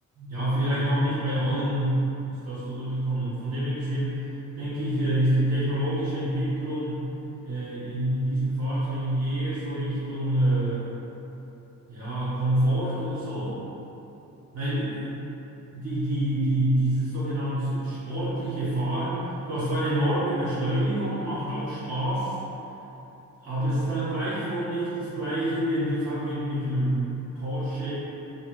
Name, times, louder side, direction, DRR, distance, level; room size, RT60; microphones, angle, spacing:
voice 1, 0.2-4.3 4.6-7.1 7.4-10.8 11.9-13.6 14.5-15.2 15.7-22.4 23.4-27.1 27.3-27.9, right 1 dB, 50° right, -12 dB, 0.9 m, -27 dB
2.7 x 2.3 x 2.9 m, 3.0 s
wide cardioid pair, 145°, 34 cm